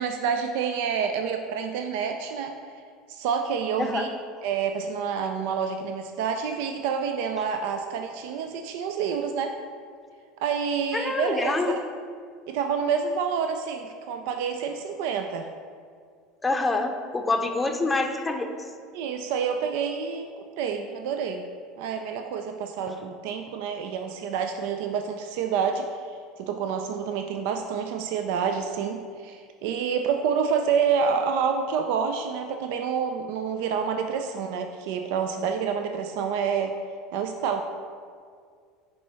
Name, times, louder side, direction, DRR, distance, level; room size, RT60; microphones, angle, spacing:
voice 1, 0.0-2.5 3.1-4.1 4.4-9.6 10.4-11.8 12.5-15.5 18.9-21.5 21.8-25.9 26.4-36.8 37.1-37.6, right 6 dB, 70° right, 6 dB, 0.3 m, -28 dB
voice 2, 3.8-4.1 10.9-11.8 16.4-18.5 22.9-23.0, left 3 dB, 15° left, 5 dB, 0.6 m, -26 dB
9.9 x 3.6 x 3.1 m, 2.1 s
hypercardioid pair, 85°, 0 cm